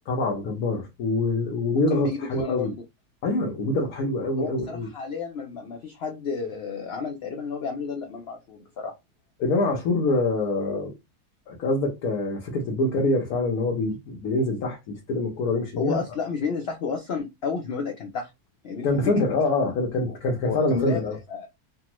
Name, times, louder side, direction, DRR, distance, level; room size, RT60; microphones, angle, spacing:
voice 1, 0.1-2.7 3.2-4.9 9.4-10.9 11.5-16.0 18.8-21.2, left 2 dB, 70° left, 1.2 m, -25 dB
voice 2, 1.9-2.8 4.4-8.9 15.8-18.3 18.6-19.3 20.4-21.0 21.3-21.5, left 5 dB, 85° left, 0.5 m, -31 dB
3.5 x 2.0 x 2.9 m
omnidirectional pair, 1.7 m